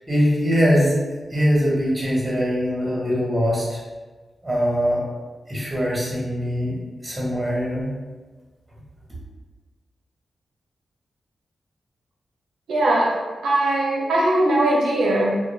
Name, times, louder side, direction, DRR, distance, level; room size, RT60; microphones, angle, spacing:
voice 1, 0.1-0.9 1.3-3.8 4.4-5.0 5.5-6.8 7.0-7.9, equal, 15° right, -6 dB, 1.2 m, -22 dB
voice 2, 12.7-15.4, right 1 dB, 90° right, -3 dB, 0.4 m, -20 dB
2.2 x 2.1 x 3.2 m, 1.3 s
cardioid pair, 55°, 0 cm